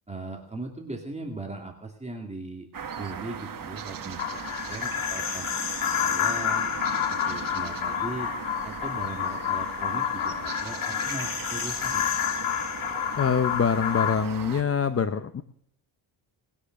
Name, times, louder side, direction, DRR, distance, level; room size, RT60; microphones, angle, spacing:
voice 1, 0.1-2.7 2.9-5.5 6.0-6.7 7.1-8.3 8.6-12.1, right 2 dB, 15° right, 2 dB, 2.3 m, -39 dB
sound 1, 2.7-14.6, right 7 dB, 40° right, 1.6 m, -38 dB
sound 2, 4.2-14.2, left 9 dB, 85° left, 2.2 m, -29 dB
voice 2, 13.1-15.4, left 6 dB, 30° left, 11 dB, 0.7 m, -25 dB
20.0 x 10.0 x 6.4 m, 0.66 s
wide cardioid pair, 135°, 49 cm